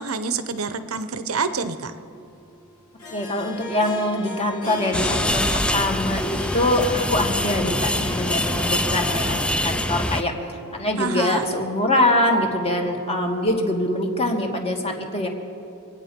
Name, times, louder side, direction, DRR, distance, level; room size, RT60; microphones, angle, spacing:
voice 1, 0.0-1.9 11.0-11.5, right 4 dB, 80° right, 11 dB, 0.9 m, -27 dB
Harp, 1.6-12.0, left 3 dB, 75° left, 2.4 m, -37 dB
voice 2, 3.1-10.3 10.7-15.3, left 1 dB, 30° left, 2 dB, 1.8 m, -24 dB
sound 1, 4.9-10.2, left 1 dB, 5° left, 0.5 m, -24 dB
24.5 x 9.4 x 5.3 m, 2.8 s
head